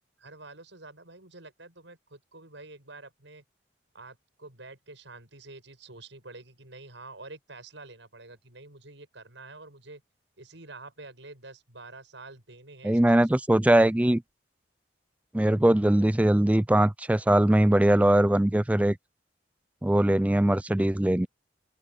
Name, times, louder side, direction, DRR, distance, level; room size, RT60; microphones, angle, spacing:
voice 1, 0.2-3.4 3.9-10.0 10.4-13.3, right 3 dB, 75° right, 6.6 m, -47 dB
voice 2, 12.8-14.2 15.3-19.0 19.8-21.3, right 1 dB, 5° right, 0.4 m, -21 dB
open air
head